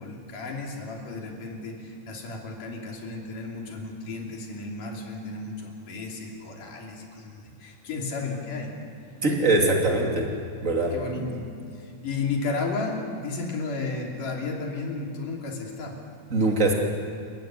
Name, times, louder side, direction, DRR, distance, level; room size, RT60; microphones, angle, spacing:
voice 1, 0.0-8.9 10.9-11.5 11.8-16.0, left 3 dB, 85° left, 0 dB, 4.7 m, -33 dB
voice 2, 9.2-10.3 10.6-11.3 12.0-12.1 16.3-16.7, right 2 dB, 25° right, 1 dB, 2.9 m, -23 dB
29.5 x 15.0 x 9.8 m, 2.3 s
omnidirectional pair, 3.6 m